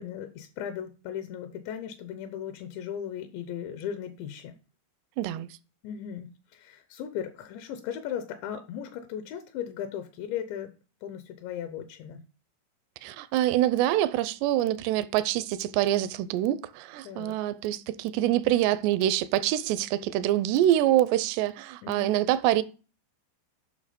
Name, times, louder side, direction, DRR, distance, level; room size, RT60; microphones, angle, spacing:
voice 1, 0.0-4.6 5.8-10.7 11.0-12.2 17.0-17.4 21.8-22.1, left 9 dB, 80° left, 3.0 m, -37 dB
voice 2, 5.2-5.5 13.0-22.6, right 13 dB, 80° right, 2.5 m, -25 dB
11.5 x 5.8 x 5.2 m
omnidirectional pair, 5.4 m